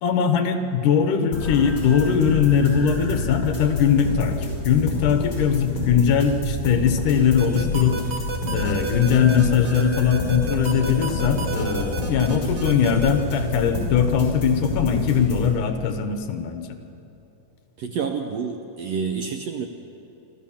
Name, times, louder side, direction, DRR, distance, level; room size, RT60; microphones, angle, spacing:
voice 1, 0.0-8.0 8.5-16.7, left 7 dB, 75° left, 7 dB, 2.6 m, -21 dB
sound 1, 1.3-15.5, left 3 dB, 35° left, 6.2 m, -28 dB
sound 2, 7.4-13.1, right 4 dB, 50° right, 2.4 m, -31 dB
voice 2, 17.8-19.7, right 6 dB, 70° right, 5 dB, 1.6 m, -28 dB
27.5 x 13.0 x 7.3 m, 3.0 s
omnidirectional pair, 3.8 m